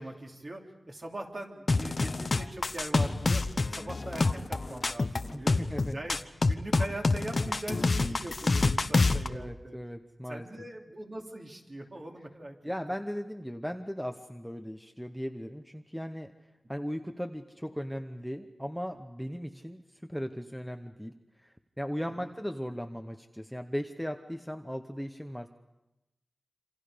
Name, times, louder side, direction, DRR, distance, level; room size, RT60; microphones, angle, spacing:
voice 1, 0.0-3.4 3.7-5.6 5.9-6.2 6.5-9.8 10.3-12.6 12.9-13.0 22.0-22.3, right 1 dB, 40° right, 0 dB, 3.2 m, -41 dB
sound 1, 1.7-9.3, left 3 dB, 45° left, 0.9 m, -27 dB
voice 2, 5.3-6.0 9.2-10.5 12.6-16.3 16.7-21.1 21.4-25.5, equal, ahead, 5 dB, 0.9 m, -37 dB
27.5 x 26.5 x 5.1 m, 0.96 s
wide cardioid pair, 120°, 0 cm